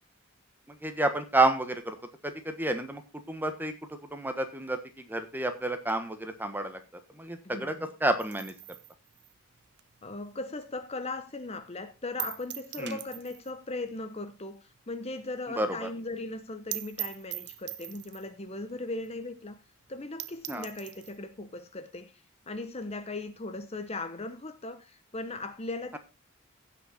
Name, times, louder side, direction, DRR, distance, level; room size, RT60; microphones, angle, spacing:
voice 1, 0.7-2.0 2.2-3.7 4.1-6.8 7.1-7.7 8.0-8.5 12.8-13.0 15.6-15.9 20.5-20.7, right 2 dB, 10° right, 1.3 m, -30 dB
voice 2, 7.4-7.9 10.0-19.6 19.9-26.0, left 2 dB, 30° left, 0.8 m, -38 dB
sound 1, 8.2-10.8 11.2-11.3 11.6-11.7 12.2-13.6 13.9-14.0 14.3-14.4 14.8-14.9 15.1-15.2 15.5-15.6 15.9-16.0 16.3-16.4 16.7-18.3 19.0-19.1 19.5-19.6 19.9-20.0 20.2-21.2, right 16 dB, 50° right, 0.7 m, -40 dB
16.0 x 6.2 x 4.2 m
head